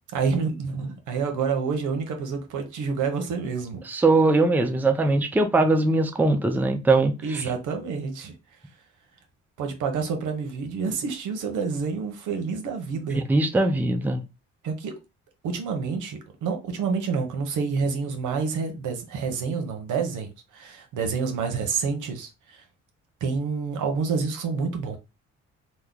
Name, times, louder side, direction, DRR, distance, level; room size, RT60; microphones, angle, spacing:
voice 1, 0.1-3.8 7.2-8.3 9.6-13.2 14.6-14.9 15.4-22.6 23.2-25.0, right 5 dB, 80° right, 0.9 m, -28 dB
voice 2, 3.9-7.5 13.1-14.2, right 2 dB, 5° right, 0.4 m, -21 dB
3.0 x 2.1 x 3.7 m
cardioid pair, 90°, 30 cm